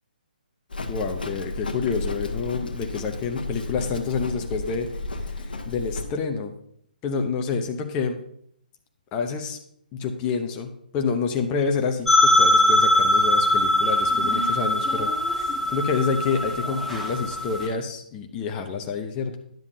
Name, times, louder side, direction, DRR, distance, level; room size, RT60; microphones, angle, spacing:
Livestock farm animals working animals, 0.7-6.0, left 2 dB, 70° left, 1.0 m, -33 dB
voice 1, 0.9-6.5 7.0-8.2 9.1-9.6 9.9-15.1 15.4-19.4, left 5 dB, 20° left, 4 dB, 0.7 m, -28 dB
sound 1, 12.1-17.7, left 1 dB, 5° left, 1.4 m, -21 dB
10.5 x 7.1 x 2.7 m, 0.68 s
figure-of-eight pair, 140°, 5 cm